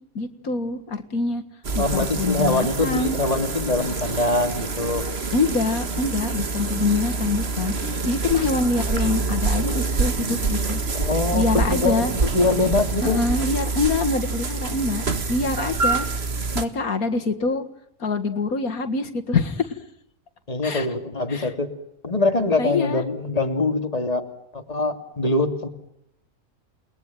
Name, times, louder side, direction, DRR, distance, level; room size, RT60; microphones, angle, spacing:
voice 1, 0.2-1.4 1.8-3.2 5.3-7.7 8.0-10.8 11.3-12.1 13.0-15.0 15.3-16.1 16.6-17.6 18.0-19.7 20.6-20.9 21.3-21.5 22.6-23.0, left 3 dB, 80° left, 7 dB, 2.3 m, -25 dB
sound 1, 1.6-16.7, right 4 dB, 45° right, 2.0 m, -26 dB
voice 2, 1.8-5.0 10.9-13.2 20.5-21.7 22.0-24.3 24.5-25.7, left 2 dB, 25° left, 6 dB, 2.7 m, -23 dB
29.5 x 21.0 x 9.2 m, 0.74 s
omnidirectional pair, 1.5 m